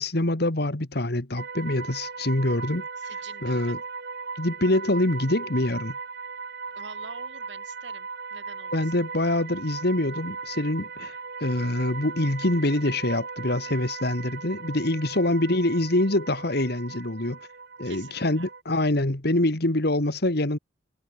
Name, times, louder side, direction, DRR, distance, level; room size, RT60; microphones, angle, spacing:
voice 1, 0.0-2.8 3.4-3.8 4.4-5.9 8.7-17.4 17.8-20.6, left 1 dB, 60° left, 2.1 m, -25 dB
sound 1, 1.4-18.6, right 4 dB, 60° right, 2.4 m, -38 dB
voice 2, 3.0-3.7 6.8-8.9 15.1-15.2 17.8-18.5, right 4 dB, 75° right, 5.7 m, -47 dB
head